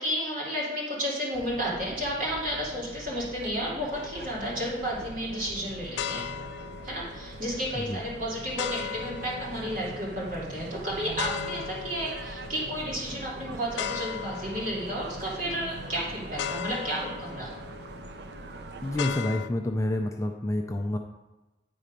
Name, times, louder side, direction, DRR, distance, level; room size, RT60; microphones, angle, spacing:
voice 1, 0.0-6.3 6.8-17.5, equal, 50° right, -5 dB, 2.5 m, -32 dB
sound 1, 1.3-19.2, right 2 dB, 70° right, 0.6 m, -42 dB
sound 2, 3.9-19.5, left 8 dB, 85° left, 0.4 m, -39 dB
voice 2, 18.8-21.0, left 1 dB, 15° left, 4 dB, 0.4 m, -28 dB
9.5 x 4.3 x 5.1 m, 1.1 s
head